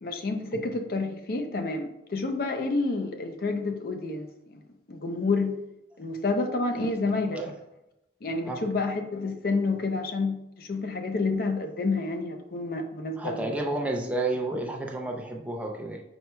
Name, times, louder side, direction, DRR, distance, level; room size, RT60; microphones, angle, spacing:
voice 1, 0.0-4.6 4.9-5.6 6.0-7.4 8.2-13.5, left 3 dB, 55° left, 5 dB, 0.5 m, -29 dB
voice 2, 13.2-16.0, right 2 dB, 10° right, 0 dB, 0.5 m, -31 dB
5.5 x 4.4 x 2.2 m, 0.88 s
head